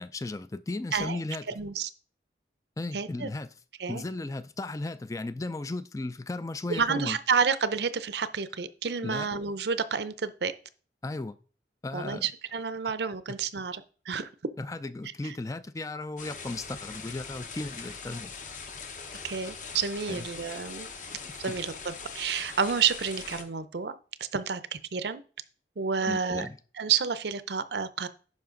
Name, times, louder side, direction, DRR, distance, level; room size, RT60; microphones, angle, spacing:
voice 1, 0.0-1.5 2.8-3.5 3.9-7.2 9.0-9.3 11.0-11.4 11.8-12.3 13.3-13.4 14.6-18.4 20.1-20.3 26.0-26.6, left 2 dB, 20° left, 0.3 m, -35 dB
voice 2, 1.5-1.9 2.9-3.3 3.8-4.0 6.7-10.5 11.9-14.3 15.2-15.4 19.2-20.9 21.4-25.2 25.8-26.5 26.8-28.1, right 6 dB, 65° right, 0.6 m, -30 dB
sound 1, 16.2-23.4, left 5 dB, 45° left, 1.0 m, -42 dB
10.5 x 5.4 x 3.8 m
head